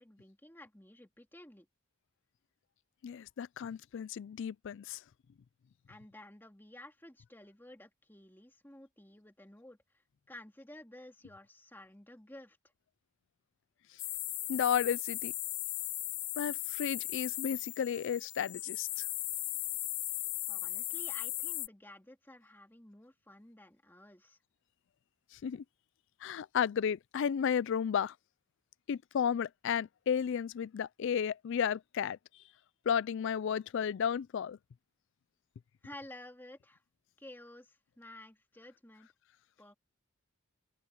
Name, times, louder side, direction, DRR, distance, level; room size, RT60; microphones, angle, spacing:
voice 1, 0.0-1.7 5.9-10.0 10.3-12.6 20.5-24.4 35.8-36.8 37.2-39.1 39.6-39.7, left 1 dB, 10° left, 2.4 m, -53 dB
voice 2, 3.0-5.0 14.5-15.3 16.4-19.1 25.4-25.6 26.2-28.1 28.9-32.2 32.9-34.6, left 8 dB, 55° left, 0.3 m, -33 dB
sound 1, 14.0-21.7, left 16 dB, 85° left, 1.1 m, -37 dB
open air
head